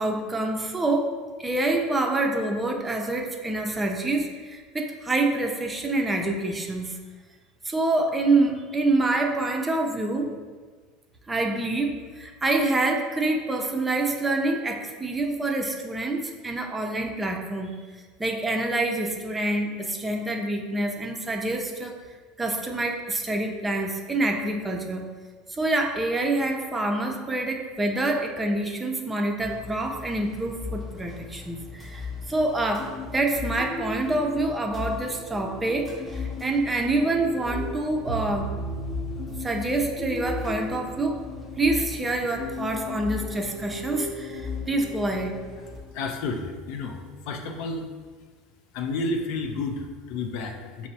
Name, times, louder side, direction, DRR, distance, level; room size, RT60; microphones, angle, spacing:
voice 1, 0.0-7.0 7.6-10.3 11.3-17.7 18.2-22.0 22.4-25.0 25.5-38.5 39.4-41.2 41.6-45.4, right 2 dB, 15° right, 2 dB, 0.5 m, -26 dB
sound 1, 29.4-45.8, left 4 dB, 10° left, 0.8 m, -39 dB
sound 2, 32.8-47.2, left 4 dB, 45° left, 0.8 m, -39 dB
sound 3, 38.1-42.5, right 4 dB, 70° right, 0.5 m, -37 dB
voice 2, 45.9-47.9 48.7-50.9, left 3 dB, 65° left, 3 dB, 0.4 m, -31 dB
5.8 x 2.0 x 2.7 m, 1.4 s
hypercardioid pair, 85°, 0 cm